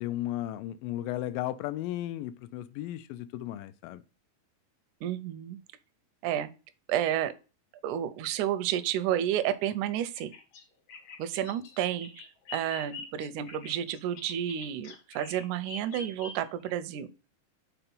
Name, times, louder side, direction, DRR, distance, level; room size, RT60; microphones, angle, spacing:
voice 1, 0.0-4.0, left 14 dB, 85° left, 2.3 m, -35 dB
voice 2, 5.0-5.6 6.2-6.5 6.9-7.3 7.8-10.3 11.2-17.1, right 11 dB, 80° right, 1.8 m, -31 dB
Bird vocalization bird call bird song, 10.1-16.7, left 4 dB, 60° left, 1.7 m, -46 dB
5.9 x 4.3 x 5.3 m
omnidirectional pair, 3.9 m